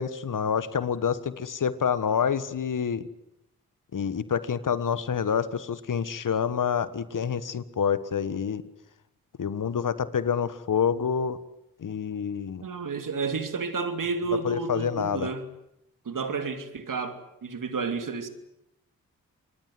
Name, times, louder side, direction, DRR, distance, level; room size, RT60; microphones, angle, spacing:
voice 1, 0.0-3.1 3.9-8.6 9.4-11.4 11.8-12.6 14.4-15.3, left 7 dB, 65° left, 1.5 m, -27 dB
voice 2, 12.6-15.4 16.0-18.3, right 4 dB, 65° right, 3.0 m, -31 dB
26.5 x 21.0 x 7.9 m
supercardioid pair, 45°, 35 cm